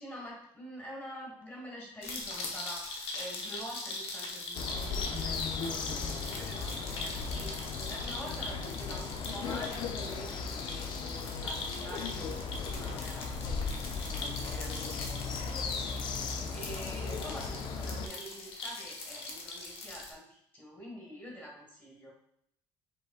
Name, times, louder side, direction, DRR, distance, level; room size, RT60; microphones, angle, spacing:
voice 1, 0.0-22.1, equal, 20° left, -3 dB, 1.6 m, -47 dB
sound 1, 2.0-20.1, left 2 dB, 65° left, 0.9 m, -41 dB
sound 2, 4.5-18.1, left 5 dB, 45° left, 0.4 m, -37 dB
5.5 x 3.7 x 2.4 m, 0.72 s
cardioid pair, 155°, 10 cm